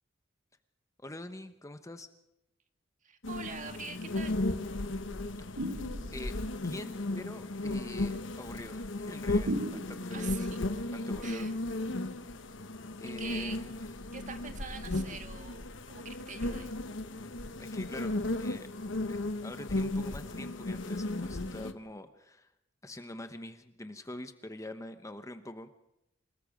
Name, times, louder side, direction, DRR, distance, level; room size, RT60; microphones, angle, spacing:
voice 1, 1.0-2.1 5.4-5.5 6.1-10.3 10.9-11.5 13.0-13.8 17.6-18.7 19.1-22.5 22.8-25.9, left 1 dB, 15° left, 9 dB, 0.9 m, -45 dB
voice 2, 3.0-4.4 10.1-10.6 11.2-11.5 13.0-13.6 14.1-16.7, right 5 dB, 40° right, 7 dB, 1.6 m, -44 dB
sound 1, 3.2-21.7, left 2 dB, 65° left, 1.1 m, -35 dB
sound 2, 5.6-6.4 9.5-10.4, right 1 dB, 85° right, 1.9 m, -36 dB
28.5 x 19.5 x 5.1 m, 0.83 s
head